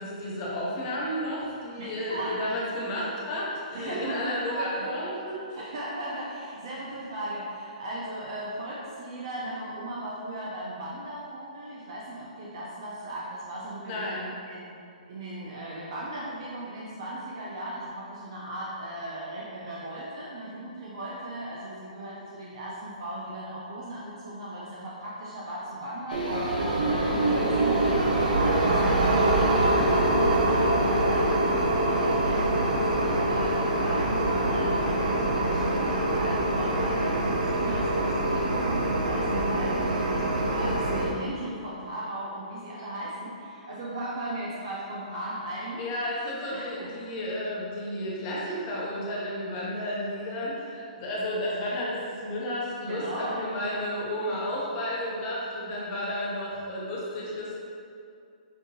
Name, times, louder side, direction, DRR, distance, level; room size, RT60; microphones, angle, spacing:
voice 1, 0.0-5.7 13.9-14.3 45.8-57.6, left 1 dB, 15° left, -5 dB, 0.5 m, -32 dB
voice 2, 1.8-2.3 3.7-4.9 5.5-14.2 14.5-14.7 15.1-26.3 26.9-27.9 28.2-31.3 31.8-45.8 46.5-46.9 52.8-53.5, right 1 dB, 35° right, -6 dB, 0.4 m, -37 dB
sound 1, 26.1-30.6, left 2 dB, 85° left, 0.6 m, -43 dB
sound 2, 26.1-41.1, right 1 dB, 80° right, 0.6 m, -24 dB
5.2 x 2.7 x 2.6 m, 2.5 s
hypercardioid pair, 180°, 4 cm